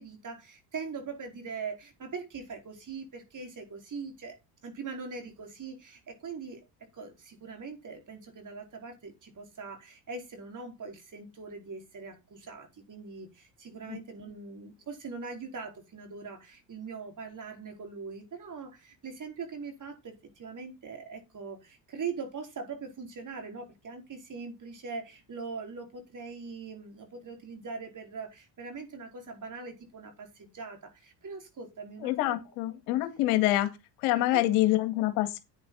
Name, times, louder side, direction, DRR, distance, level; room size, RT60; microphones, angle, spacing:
voice 1, 0.0-4.4 4.6-6.6 6.9-32.4 34.1-34.4, right 5 dB, 40° right, 4.8 m, -41 dB
voice 2, 32.0-33.7 34.0-35.4, left 16 dB, 75° left, 2.1 m, -26 dB
10.0 x 9.4 x 4.1 m
supercardioid pair, 80°, 49 cm